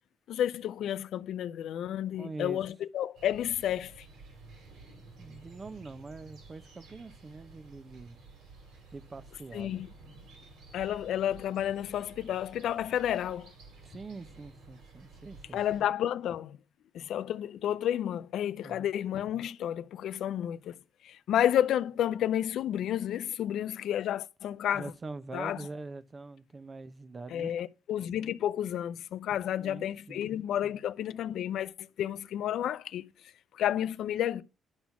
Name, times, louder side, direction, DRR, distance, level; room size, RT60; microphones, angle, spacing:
voice 1, 0.3-4.1 9.5-9.9 10.7-13.5 15.5-16.6 16.9-20.7 21.0-24.9 25.3-25.6 27.3-31.7 32.0-33.0 33.5-34.4, left 11 dB, 75° left, 0.4 m, -31 dB
voice 2, 2.1-2.6 5.2-8.2 8.9-9.8 13.8-15.8 18.6-18.9 24.7-27.5 29.6-30.3, right 3 dB, 30° right, 0.7 m, -44 dB
sound 1, 3.1-15.8, right 3 dB, 85° right, 2.9 m, -53 dB
10.5 x 4.2 x 5.9 m
cardioid pair, 90°, 0 cm